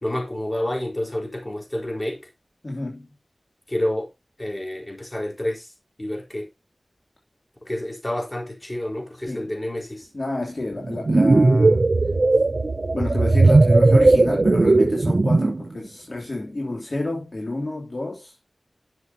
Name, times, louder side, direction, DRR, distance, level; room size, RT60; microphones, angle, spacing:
voice 1, 0.0-2.2 3.7-4.1 4.4-5.7 6.0-6.5 7.6-10.1, left 1 dB, 25° left, 4.4 m, -29 dB
voice 2, 2.6-3.2 9.3-9.5 10.1-11.9 12.9-18.5, left 2 dB, 50° left, 3.0 m, -30 dB
sound 1, 10.8-15.6, right 2 dB, 55° right, 0.5 m, -17 dB
11.5 x 6.8 x 2.9 m
wide cardioid pair, 65°, 0 cm